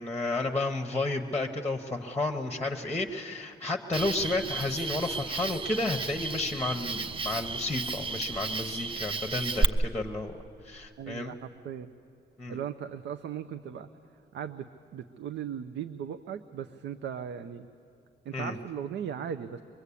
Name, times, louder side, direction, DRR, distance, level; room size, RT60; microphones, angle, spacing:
voice 1, 0.0-10.4 10.6-11.3 12.4-12.6 18.3-18.5, left 2 dB, 10° left, 5 dB, 0.9 m, -32 dB
Cricket, 3.9-9.6, right 3 dB, 30° right, 0.6 m, -33 dB
voice 2, 11.0-11.9 12.5-13.9 14.3-17.7 18.2-19.6, right 8 dB, 85° right, 9 dB, 0.7 m, -38 dB
24.5 x 22.0 x 8.4 m, 2.5 s
wide cardioid pair, 170°, 18 cm